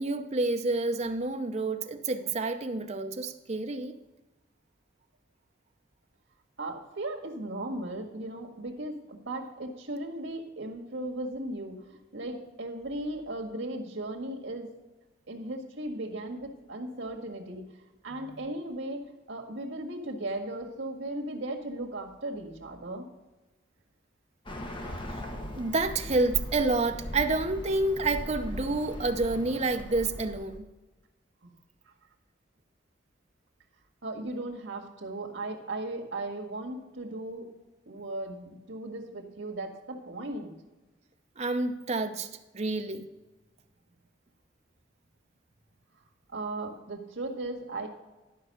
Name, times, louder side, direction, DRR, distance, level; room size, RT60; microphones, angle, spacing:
voice 1, 0.0-4.0 18.3-18.4 25.6-30.7 41.4-42.3 42.5-43.0, right 2 dB, 35° right, 0.7 m, -29 dB
voice 2, 6.6-14.7 15.3-17.7 18.0-19.0 19.3-23.1 31.4-31.5 34.0-37.5 37.9-40.5 46.3-47.9, right 1 dB, 80° right, 1.8 m, -37 dB
Bird, 24.5-30.6, equal, 25° left, 1.0 m, -39 dB
12.0 x 5.5 x 6.6 m
head